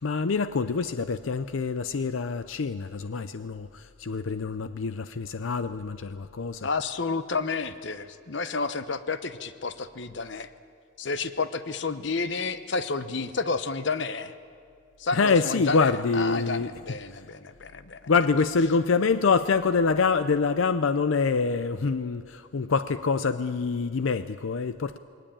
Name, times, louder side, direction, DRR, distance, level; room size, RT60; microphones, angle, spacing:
voice 1, 0.0-6.7 15.1-16.7 18.1-25.0, left 4 dB, 80° left, 12 dB, 0.5 m, -25 dB
voice 2, 6.6-10.5 11.0-14.3 15.0-18.0, left 4 dB, 60° left, 12 dB, 0.9 m, -30 dB
20.5 x 18.5 x 8.9 m, 2.4 s
head